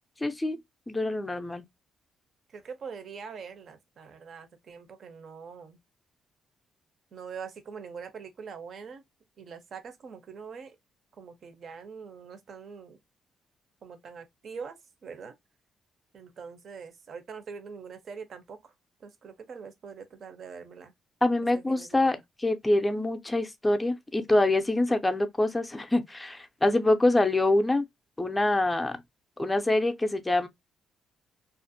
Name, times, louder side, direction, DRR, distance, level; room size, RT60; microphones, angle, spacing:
voice 1, 0.2-0.6 0.9-1.6 21.2-27.8 28.2-29.0 29.4-30.5, left 2 dB, 15° left, 0.4 m, -25 dB
voice 2, 2.5-5.8 7.1-9.0 9.4-10.8 11.2-13.0 13.8-14.8 15.0-15.3 16.1-18.7 19.0-20.9 21.7-22.1, right 6 dB, 55° right, 0.6 m, -43 dB
2.4 x 2.1 x 2.6 m
cardioid pair, 90°, 0 cm